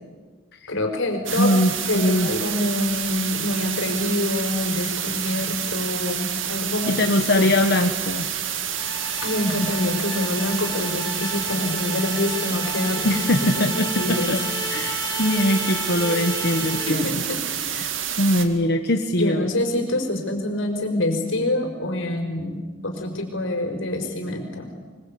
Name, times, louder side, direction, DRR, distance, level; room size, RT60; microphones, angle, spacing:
voice 1, 0.7-1.5 1.9-7.5 9.2-13.7 14.0-14.4 16.9-17.7 19.1-24.7, left 1 dB, 90° left, 4 dB, 5.1 m, -26 dB
voice 2, 1.3-2.3 5.4-5.5 6.9-8.3 13.0-14.4 14.7-17.2 17.7-17.9 18.2-19.5, left 1 dB, 55° left, 4 dB, 1.3 m, -22 dB
sound 1, 1.3-18.5, right 9 dB, 80° right, 2.2 m, -28 dB
sound 2, 8.7-17.2, left 3 dB, 25° left, 5.5 m, -34 dB
24.0 x 23.5 x 8.6 m, 1.4 s
head